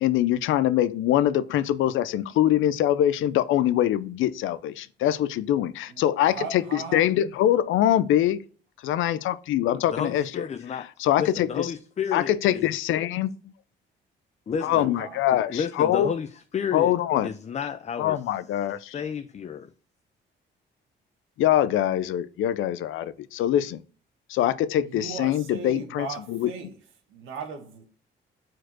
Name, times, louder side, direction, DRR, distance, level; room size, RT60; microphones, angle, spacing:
voice 1, 0.0-8.4 8.8-10.4 11.0-11.7 12.1-13.3 14.6-16.1 16.7-17.3 18.0-19.0 21.4-23.8 24.3-26.5, left 12 dB, 80° left, 0.5 m, -23 dB
voice 2, 5.9-7.1 14.6-15.2 24.8-26.8 27.1-27.8, right 5 dB, 90° right, 1.5 m, -38 dB
voice 3, 9.9-10.9 11.2-12.6 14.5-14.9 15.3-16.9 17.2-18.2 18.9-19.7, left 7 dB, 35° left, 0.5 m, -31 dB
4.7 x 4.5 x 6.0 m
cardioid pair, 90°, 20 cm